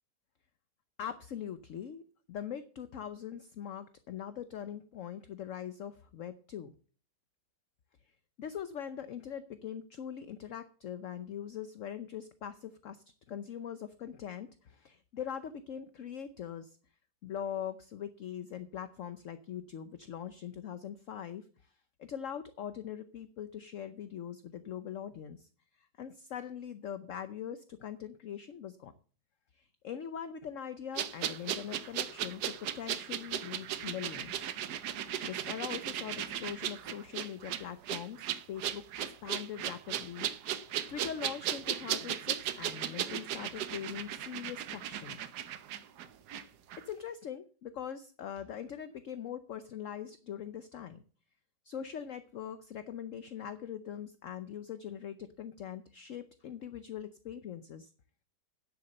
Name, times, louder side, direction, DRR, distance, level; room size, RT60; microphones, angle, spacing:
voice 1, 1.0-2.0 2.3-6.7 8.4-16.8 17.2-21.5 22.0-25.5 25.8-28.9 29.5-34.4 35.2-38.8 39.2-40.3 40.9-45.2 46.8-51.0 51.6-57.9, left 9 dB, 55° left, 11 dB, 1.0 m, -42 dB
sound 1, 31.0-46.4 46.7-46.8, right 10 dB, 75° right, 1.3 m, -37 dB
9.9 x 8.0 x 6.6 m, 0.41 s
omnidirectional pair, 1.8 m